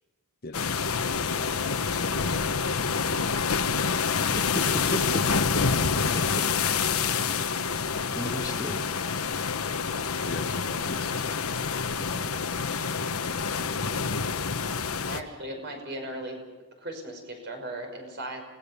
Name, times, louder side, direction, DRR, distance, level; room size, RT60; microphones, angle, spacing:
voice 1, 0.4-2.6 8.2-8.5 10.2-11.4, left 2 dB, 45° left, 9 dB, 1.0 m, -41 dB
sound 1, 0.5-15.2, left 5 dB, 80° left, 1.2 m, -27 dB
voice 2, 4.3-5.2 6.0-6.4 8.1-8.8, left 1 dB, 15° left, 4 dB, 1.4 m, -34 dB
voice 3, 15.1-16.4 16.8-18.4, right 1 dB, 50° right, 3 dB, 5.6 m, -37 dB
29.0 x 18.5 x 7.0 m, 1.2 s
head